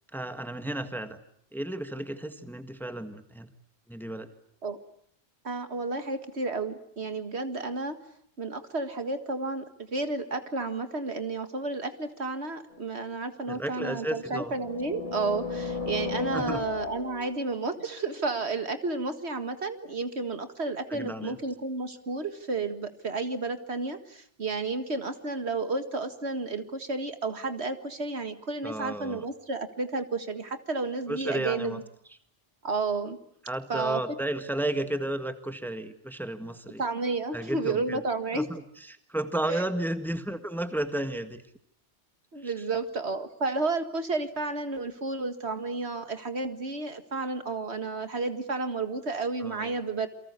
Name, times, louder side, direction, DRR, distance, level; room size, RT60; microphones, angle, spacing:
voice 1, 0.1-1.2 1.5-3.5 3.9-4.3 13.5-14.5 16.3-16.6 20.9-21.4 28.6-29.2 31.1-31.8 33.4-36.8 37.3-38.0 38.3-38.6 38.9-41.4 42.4-42.5 49.4-49.7, right 1 dB, ahead, 9 dB, 1.6 m, -33 dB
voice 2, 5.4-8.0 8.4-31.8 32.6-33.2 33.7-34.0 36.8-38.5 39.5-39.7 42.3-50.1, right 3 dB, 65° right, 9 dB, 2.1 m, -32 dB
sound 1, 12.7-12.8 13.9-17.4, left 4 dB, 30° left, 2.0 m, -35 dB
28.5 x 24.0 x 8.3 m, 0.64 s
omnidirectional pair, 1.2 m